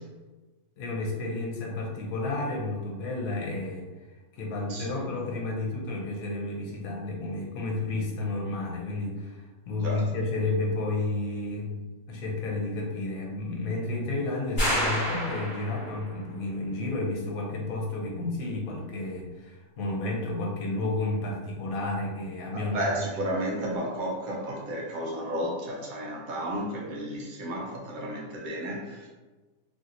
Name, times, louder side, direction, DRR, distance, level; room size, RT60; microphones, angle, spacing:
voice 1, 0.8-3.9 4.4-11.7 12.1-23.0, left 2 dB, 70° left, -1 dB, 1.1 m, -31 dB
sound 1, 14.6-16.1, equal, 30° left, 1.5 m, -28 dB
voice 2, 22.5-29.1, equal, 70° right, -3 dB, 1.1 m, -32 dB
3.1 x 2.8 x 2.5 m, 1.2 s
omnidirectional pair, 1.6 m